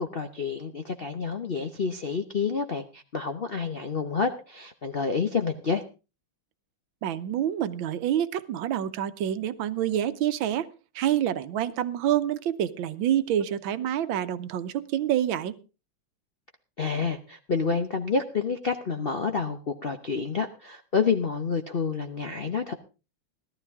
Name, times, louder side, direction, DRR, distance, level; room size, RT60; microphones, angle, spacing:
voice 1, 0.0-5.8 16.8-22.7, left 5 dB, 55° left, 6 dB, 0.6 m, -28 dB
voice 2, 7.0-10.7 10.9-15.5, right 11 dB, 75° right, 12 dB, 1.6 m, -27 dB
17.0 x 13.0 x 3.6 m, 0.33 s
omnidirectional pair, 2.2 m